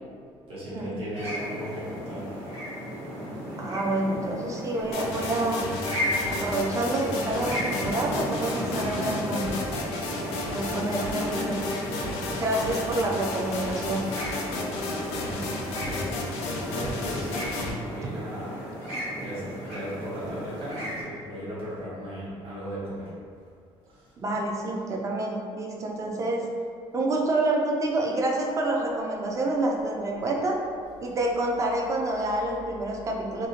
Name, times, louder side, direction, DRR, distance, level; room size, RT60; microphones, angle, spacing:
voice 1, 0.5-2.3 14.5-15.3 15.8-16.2 16.7-18.5 19.2-23.1 23.9-24.0, equal, 60° right, -10 dB, 0.9 m, -37 dB
sound 1, 1.1-21.0, equal, 75° right, 1.4 m, -35 dB
voice 2, 3.6-5.6 6.3-9.5 10.5-11.6 12.3-14.0 24.2-26.4 26.9-30.6 31.0-33.5, right 2 dB, 30° right, 0 dB, 0.4 m, -28 dB
sound 2, 4.9-17.7, left 2 dB, 85° left, 0.4 m, -32 dB
2.6 x 2.1 x 2.7 m, 2.1 s
cardioid pair, 115°, 10 cm